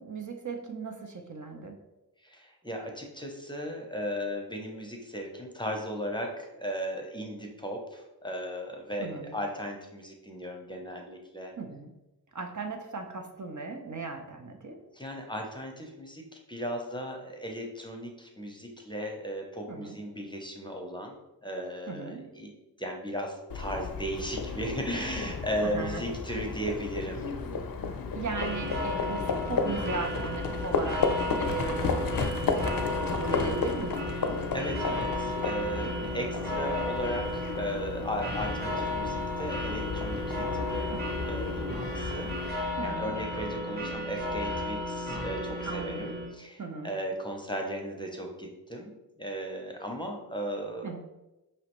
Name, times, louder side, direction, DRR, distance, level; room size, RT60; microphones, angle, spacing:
voice 1, 0.0-1.8 9.0-9.4 11.6-11.9 12.3-14.8 19.7-20.0 21.9-22.3 25.6-26.0 28.1-31.0 31.4-32.3 33.1-34.4 35.9-36.1 40.9-41.2 42.8-43.1 45.6-46.1 46.6-46.9 50.8-51.0, right 4 dB, 50° right, 3 dB, 0.6 m, -37 dB
voice 2, 2.2-11.5 14.9-21.2 21.4-22.5 22.8-27.2 34.1-34.2 34.5-41.0 41.3-48.9 49.2-51.0, equal, 10° left, 1 dB, 0.7 m, -36 dB
Livestock farm animals working animals, 23.5-42.5, left 4 dB, 60° left, 0.5 m, -33 dB
sound 1, 28.4-46.3, left 1 dB, 25° right, 1.2 m, -34 dB
4.9 x 3.1 x 3.0 m, 0.99 s
wide cardioid pair, 50°, 40 cm